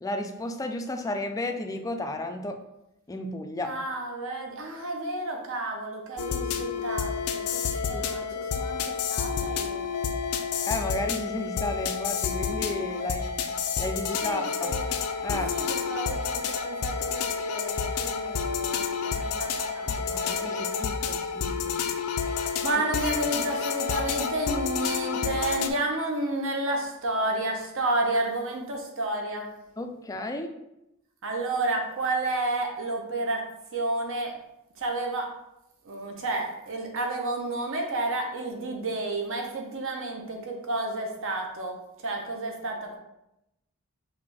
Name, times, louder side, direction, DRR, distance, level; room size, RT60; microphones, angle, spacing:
voice 1, 0.0-2.6 3.1-3.7 7.9-8.0 10.7-13.5 13.8-14.8 15.2-15.6 19.9-21.9 29.8-30.6, left 1 dB, 15° left, 6 dB, 0.3 m, -33 dB
voice 2, 3.6-9.9 14.2-14.9 15.3-20.8 22.3-29.5 31.2-33.4 33.7-34.3 34.8-35.3 35.8-43.0, right 2 dB, 65° right, 2 dB, 0.8 m, -31 dB
sound 1, 6.2-25.7, left 6 dB, 85° left, 0.4 m, -29 dB
5.0 x 2.6 x 3.4 m, 0.88 s
head